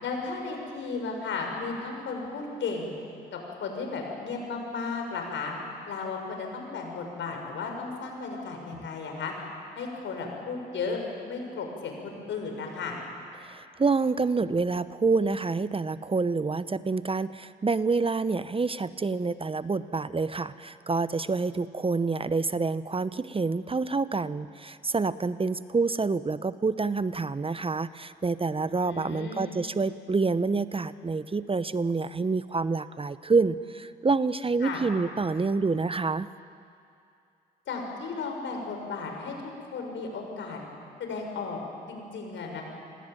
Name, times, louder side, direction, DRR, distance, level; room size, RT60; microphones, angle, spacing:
voice 1, 0.0-2.9 3.3-5.5 5.9-9.3 9.7-11.0 11.3-13.0 28.8-29.6 34.6-34.8 37.7-40.6 41.0-41.6 41.9-42.6, left 4 dB, 65° left, 2 dB, 6.9 m, -34 dB
voice 2, 13.4-36.3, right 4 dB, 25° right, 14 dB, 0.9 m, -27 dB
28.0 x 20.5 x 9.2 m, 2.5 s
hypercardioid pair, 50°, 21 cm